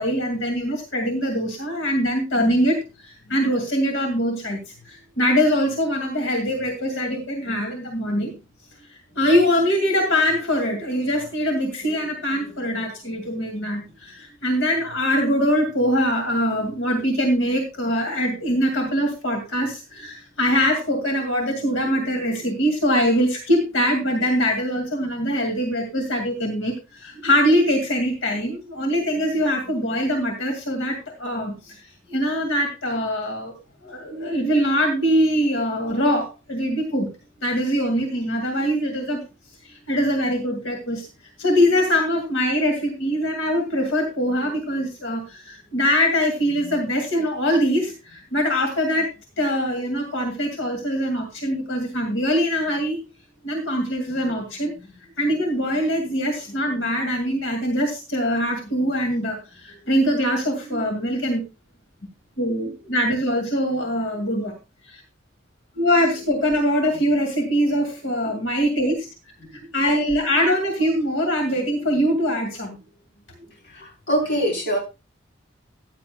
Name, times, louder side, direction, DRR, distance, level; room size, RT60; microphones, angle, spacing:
voice 1, 0.0-2.8 3.3-4.6 4.9-8.3 9.2-26.7 27.0-31.5 32.1-33.5 33.8-37.1 37.4-39.2 39.9-41.0 41.4-49.1 49.4-53.0 53.4-54.7 55.2-61.4 62.4-64.5 64.9-65.0 65.8-69.1 69.7-72.8, equal, 85° left, 3 dB, 2.3 m, -23 dB
voice 2, 73.6-74.8, equal, 60° left, 1 dB, 3.7 m, -23 dB
14.5 x 10.5 x 2.3 m, 0.27 s
head